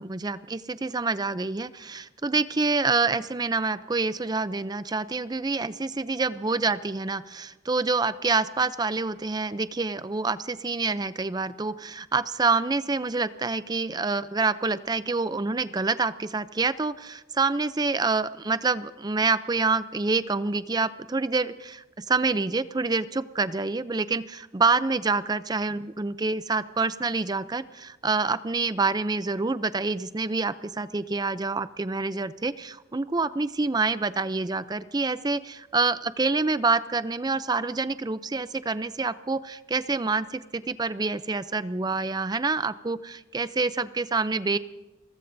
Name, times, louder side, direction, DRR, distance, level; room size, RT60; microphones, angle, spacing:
voice 1, 0.0-44.6, right 3 dB, 20° right, 14 dB, 0.5 m, -27 dB
30.0 x 14.5 x 2.7 m, 1.1 s
head